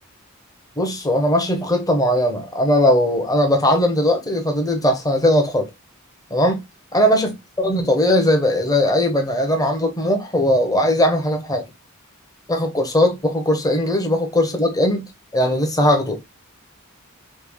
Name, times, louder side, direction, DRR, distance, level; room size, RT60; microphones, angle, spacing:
voice 1, 0.8-5.7 6.3-6.6 6.9-11.6 12.5-16.2, left 1 dB, 15° left, 0.8 m, -19 dB
3.2 x 2.4 x 3.5 m
head